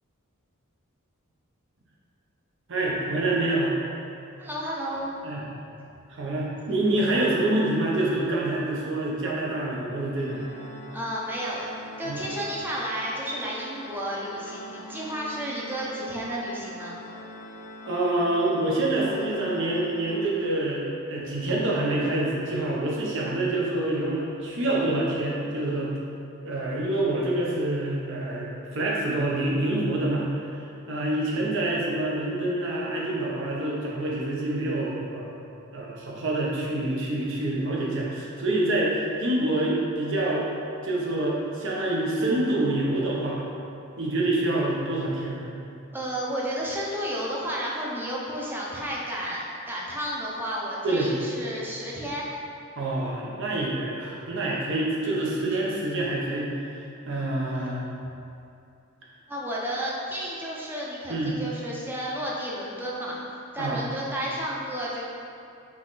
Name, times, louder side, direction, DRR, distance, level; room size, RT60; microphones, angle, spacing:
voice 1, 2.7-3.8 5.2-5.5 6.1-10.4 12.0-12.2 17.8-25.9 26.4-30.6 30.9-35.3 35.7-40.5 40.8-43.4 44.0-45.5 50.8-51.2 52.8-57.9 61.1-61.4 63.6-63.8, right 1 dB, 60° right, -4 dB, 0.8 m, -26 dB
voice 2, 4.4-5.1 10.9-11.7 12.0-17.0 45.9-52.3 59.3-65.0, equal, 10° right, -5 dB, 0.6 m, -32 dB
Organ, 10.2-20.9, left 1 dB, 35° left, 0.3 m, -43 dB
4.0 x 3.1 x 4.0 m, 2.6 s
head